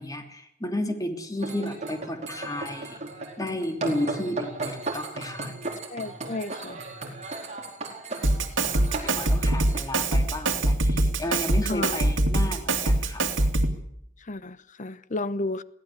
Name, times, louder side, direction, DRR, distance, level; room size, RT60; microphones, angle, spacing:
voice 1, 0.0-3.0 3.4-5.5 9.0-13.2, left 1 dB, 20° left, 3.0 m, -32 dB
sound 1, 1.4-9.8, right 3 dB, 40° right, 4.7 m, -35 dB
voice 2, 5.9-6.8 11.7-12.0 14.3-15.6, left 2 dB, 40° left, 0.8 m, -32 dB
Drum kit, 8.2-13.8, right 2 dB, 85° right, 2.6 m, -24 dB
22.5 x 16.5 x 8.3 m
head